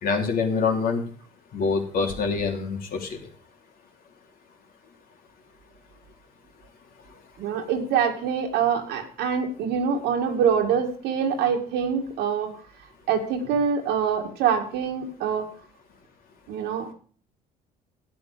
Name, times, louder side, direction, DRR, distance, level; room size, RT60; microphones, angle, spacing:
voice 1, 0.0-1.1 1.5-3.2, left 4 dB, 60° left, 2 dB, 3.1 m, -25 dB
voice 2, 7.4-12.5 13.1-15.5 16.5-16.9, right 7 dB, 90° right, 2 dB, 2.3 m, -25 dB
12.0 x 9.7 x 5.1 m, 0.43 s
cardioid pair, 110°, 17 cm